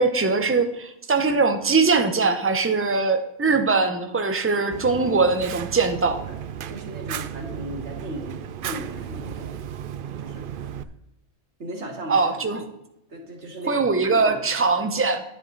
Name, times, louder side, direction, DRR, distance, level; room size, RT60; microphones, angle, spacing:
voice 1, 0.0-6.2 12.1-12.6 13.7-15.2, right 4 dB, 10° right, 7 dB, 0.6 m, -21 dB
Fire, 4.7-10.8, right 9 dB, 80° right, 0.4 m, -34 dB
voice 2, 6.7-9.5 10.2-10.7 11.6-12.3 13.1-13.9 14.2-14.4, right 1 dB, 50° right, 0 dB, 2.6 m, -36 dB
10.0 x 9.4 x 4.0 m, 0.86 s
omnidirectional pair, 1.5 m